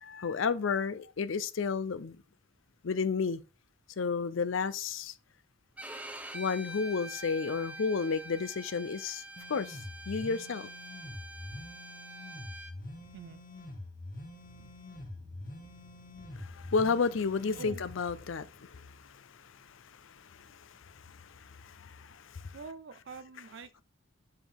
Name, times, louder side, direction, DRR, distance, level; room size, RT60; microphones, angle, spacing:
voice 1, 0.0-2.2 2.8-3.4 4.0-5.1 6.3-9.2 9.5-9.8 10.1-10.7 16.4-22.5, left 5 dB, 75° left, 0.5 m, -32 dB
Bowed string instrument, 5.8-12.7, right 1 dB, 5° right, 0.6 m, -45 dB
sound 1, 9.4-17.9, left 2 dB, 45° left, 1.3 m, -45 dB
sound 2, 12.8-18.8, equal, 35° right, 3.3 m, -58 dB
voice 2, 17.5-17.9 22.5-23.8, right 5 dB, 60° right, 0.4 m, -46 dB
7.6 x 5.0 x 3.6 m
head